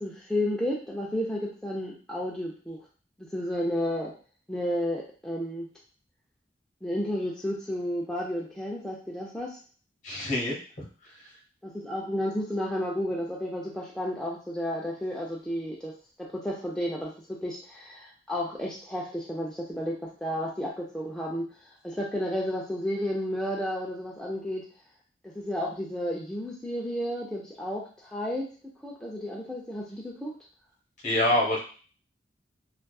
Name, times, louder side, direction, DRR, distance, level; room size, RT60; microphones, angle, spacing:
voice 1, 0.0-2.8 3.2-4.1 4.5-5.7 6.8-9.6 11.6-15.9 16.2-24.6 25.2-28.5 28.8-30.3, equal, 5° left, -4 dB, 0.3 m, -32 dB
voice 2, 10.0-10.8 31.0-31.6, left 1 dB, 45° left, -3 dB, 1.0 m, -26 dB
2.6 x 2.3 x 2.2 m, 0.39 s
head